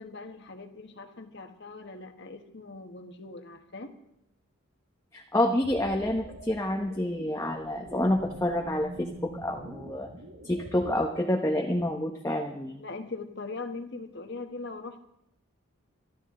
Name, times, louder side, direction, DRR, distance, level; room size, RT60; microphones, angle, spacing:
voice 1, 0.0-3.9 12.8-15.0, left 3 dB, 55° left, 7 dB, 1.4 m, -41 dB
voice 2, 5.1-10.1 10.4-12.8, left 1 dB, 15° left, 1 dB, 0.9 m, -28 dB
sound 1, 5.6-11.0, equal, 80° right, 2.0 m, -44 dB
22.5 x 13.5 x 3.8 m, 0.81 s
head